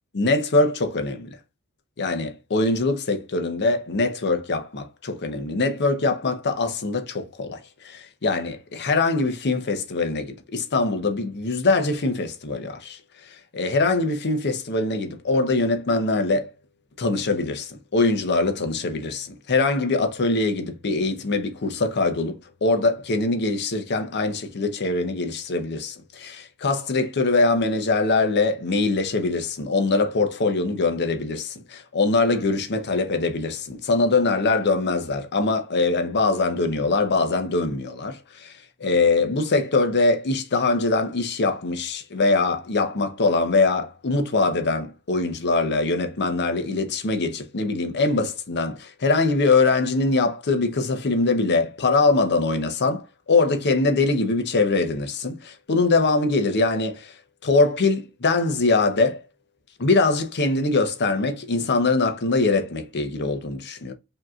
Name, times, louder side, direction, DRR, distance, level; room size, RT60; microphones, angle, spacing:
voice 1, 0.1-1.4 2.0-16.5 17.0-57.2 57.4-59.2 59.8-63.9, left 3 dB, 50° left, 0.8 m, -23 dB
5.2 x 2.8 x 2.4 m
head